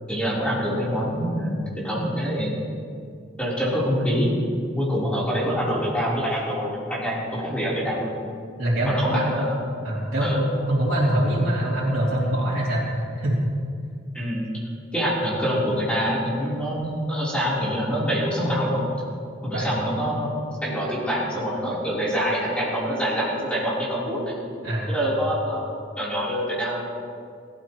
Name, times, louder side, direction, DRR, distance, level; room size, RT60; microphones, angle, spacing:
voice 1, 0.1-2.6 3.4-4.3 4.7-8.1 8.9-9.6 10.2-10.4 14.1-14.5 14.9-18.8 19.4-20.3 20.6-24.3 24.9-26.9, equal, 5° left, -8 dB, 3.6 m, -25 dB
voice 2, 8.6-9.3 9.8-13.4 19.5-19.7 24.6-25.2, right 1 dB, 85° right, -10 dB, 3.0 m, -24 dB
23.0 x 12.5 x 3.1 m, 2.3 s
head